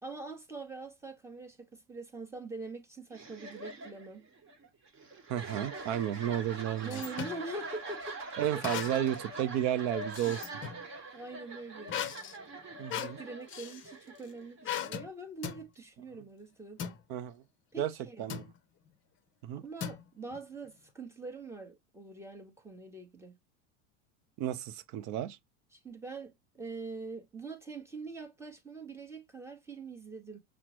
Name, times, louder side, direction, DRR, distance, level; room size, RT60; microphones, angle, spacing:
voice 1, 0.0-4.3 6.8-8.2 8.5-8.6 11.1-12.0 12.9-17.0 17.7-18.3 19.5-23.3 25.7-30.4, right 3 dB, 5° right, 0.9 m, -44 dB
sound 1, 3.1-14.8, right 2 dB, 35° right, 1.2 m, -44 dB
voice 2, 5.3-7.0 8.4-10.5 12.8-13.2 17.1-17.4 17.8-17.9 18.2-18.4 19.4-19.6 24.4-25.4, right 11 dB, 50° right, 0.5 m, -32 dB
sound 2, 6.3-7.4 8.6-9.2 9.6-10.8 11.9-13.9 14.6-15.1 15.4-15.6 16.8-17.0 18.3-18.6 19.8-20.4, left 9 dB, 35° left, 0.6 m, -38 dB
5.8 x 2.1 x 2.9 m
supercardioid pair, 110°, 37 cm